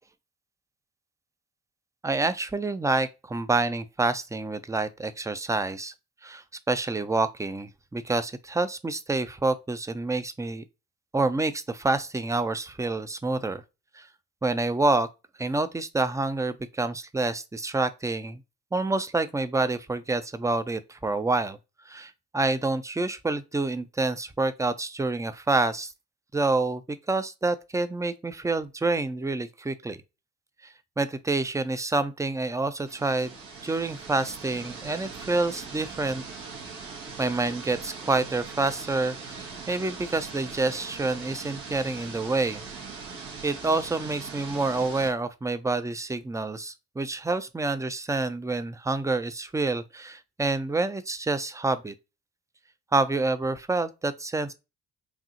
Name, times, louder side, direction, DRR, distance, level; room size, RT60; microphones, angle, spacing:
voice 1, 2.0-5.9 6.2-10.6 11.1-13.6 14.0-14.1 14.4-15.1 15.4-18.4 18.7-21.6 21.9-25.9 26.3-30.0 31.0-33.3 33.6-36.2 37.2-42.6 43.4-51.9 52.9-54.5, right 3 dB, 10° right, 0.5 m, -27 dB
sound 1, 32.9-45.1, right 4 dB, 75° right, 1.7 m, -41 dB
5.0 x 2.7 x 3.0 m
hypercardioid pair, 50°, 41 cm